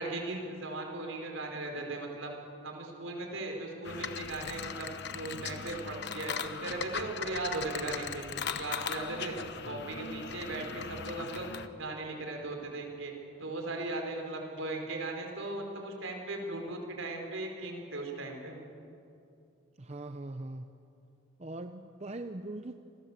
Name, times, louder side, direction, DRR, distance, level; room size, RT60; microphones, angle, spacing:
voice 1, 0.0-2.3 2.6-9.3 9.6-11.5 11.8-13.1 13.4-18.6, right 2 dB, 70° right, 2 dB, 4.8 m, -38 dB
sound 1, 3.8-11.7, left 6 dB, 55° left, 1.0 m, -39 dB
voice 2, 19.8-20.7 21.4-22.8, right 2 dB, 30° right, 7 dB, 0.7 m, -41 dB
28.5 x 21.0 x 7.5 m, 2.6 s
head